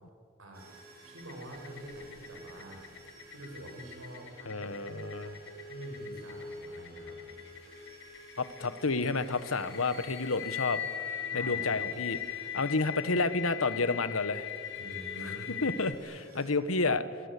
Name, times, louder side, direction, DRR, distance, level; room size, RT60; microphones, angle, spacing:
sound 1, 0.5-16.5, right 1 dB, 50° right, 6.2 m, -50 dB
voice 1, 1.0-2.8 3.3-4.7 5.0-5.4 5.7-7.4 11.3-11.7 14.7-15.6, right 1 dB, 75° right, 3 dB, 6.4 m, -46 dB
sound 2, 1.2-15.9, left 10 dB, 60° left, 1.3 m, -40 dB
voice 2, 4.5-5.3 8.4-10.8 11.3-14.5 15.2-15.3 15.6-17.0, left 3 dB, 90° left, 12 dB, 1.4 m, -30 dB
25.0 x 21.0 x 8.5 m, 2.2 s
head